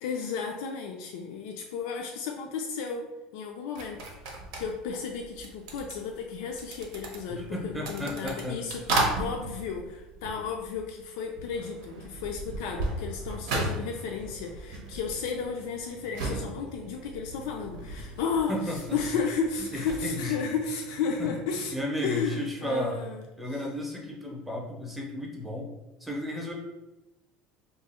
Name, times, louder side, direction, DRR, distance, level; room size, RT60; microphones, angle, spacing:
voice 1, 0.0-3.1 3.3-4.1 4.5-21.7 22.0-23.2, left 5 dB, 90° left, 1 dB, 0.4 m, -33 dB
sound 1, 3.7-11.0 11.3-20.1, right 2 dB, 85° right, 0.8 m, -36 dB
voice 2, 7.3-8.6 18.5-19.0 19.7-20.3 21.2-21.3 21.7-23.0 23.4-25.7 26.0-26.5, left 1 dB, 5° right, -2 dB, 0.6 m, -33 dB
sound 2, 12.2-21.8, right 3 dB, 65° right, 0.4 m, -49 dB
2.8 x 2.3 x 4.2 m, 1.0 s
cardioid pair, 160°, 2 cm